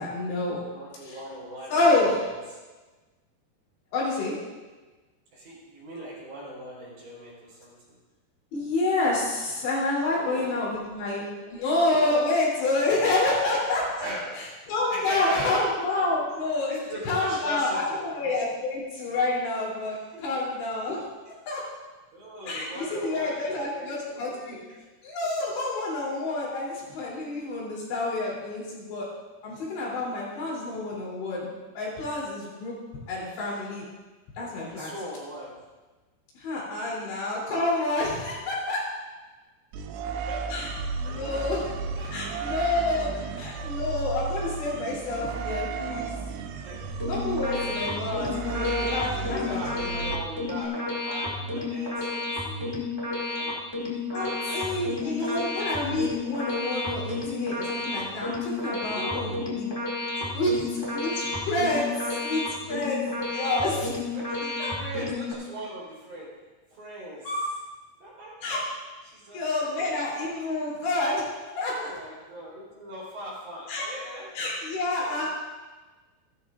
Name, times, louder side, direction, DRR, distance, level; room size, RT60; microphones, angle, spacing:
voice 1, 0.0-0.6 1.1-1.2 1.7-2.2 3.9-4.3 8.5-11.3 11.5-14.1 14.7-16.7 17.1-20.0 20.2-21.0 21.5-21.6 22.5-24.6 25.0-29.1 29.4-32.8 33.1-33.8 34.4-34.9 36.4-38.8 40.5-40.7 41.0-41.7 42.1-46.2 47.1-50.0 54.1-59.7 60.3-64.0 64.6-64.7 67.3-67.4 68.4-68.6 69.3-71.3 71.6-71.7 73.7-73.9 74.4-75.3, left 2 dB, 80° left, -5 dB, 5.3 m, -28 dB
voice 2, 0.6-2.6 5.3-8.0 10.0-10.9 11.4-11.6 12.8-12.9 13.2-13.6 13.9-14.3 14.9-15.7 16.7-18.4 19.9-20.4 22.1-24.8 34.4-35.5 36.7-37.0 40.3-40.5 41.0-41.6 41.9-42.4 43.1-43.3 45.0-45.1 46.5-46.8 47.3-47.4 49.1-53.6 54.2-55.6 58.9-59.4 60.0-60.5 64.1-66.3 66.7-67.4 68.0-68.3 69.0-69.8 70.3-70.4 71.6-74.3 75.0-75.3, equal, 50° right, -7 dB, 5.0 m, -40 dB
sound 1, 39.7-50.7, right 5 dB, 80° right, 2.3 m, -34 dB
Random sequence synth, 46.8-65.3, left 2 dB, 25° left, 0.5 m, -31 dB
15.5 x 12.5 x 2.4 m, 1.2 s
omnidirectional pair, 5.0 m